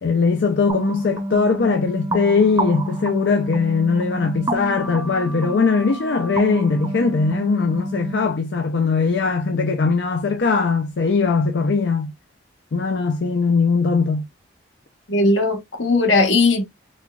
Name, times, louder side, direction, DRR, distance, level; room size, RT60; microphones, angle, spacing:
voice 1, 0.0-12.1 12.7-14.3, left 4 dB, 65° left, 0.5 m, -20 dB
sound 1, 0.7-8.3, right 1 dB, 20° right, 0.5 m, -28 dB
voice 2, 15.1-16.6, left 2 dB, 80° left, 1.1 m, -18 dB
4.1 x 2.3 x 2.3 m
head